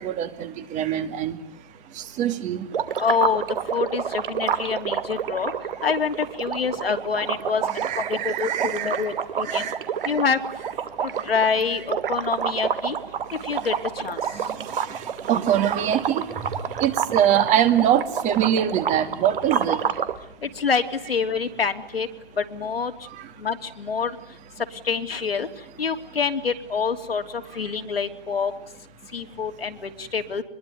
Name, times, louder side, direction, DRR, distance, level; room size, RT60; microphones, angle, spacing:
voice 1, 0.0-1.4 2.2-2.7 7.7-9.1 9.5-9.8 15.3-16.2 16.8-19.8, right 10 dB, 25° right, 10 dB, 2.2 m, -23 dB
sound 1, 2.7-20.1, right 8 dB, 65° right, 2.5 m, -28 dB
voice 2, 3.0-3.4 3.7-5.5 5.8-9.7 10.0-10.4 11.2-13.0 13.4-14.2 20.4-22.1 22.4-22.9 23.4-24.1 24.8-25.5 25.8-28.5 29.1-30.4, left 5 dB, 90° left, 6 dB, 3.0 m, -26 dB
26.0 x 22.0 x 9.5 m, 0.66 s
hypercardioid pair, 135°, 29 cm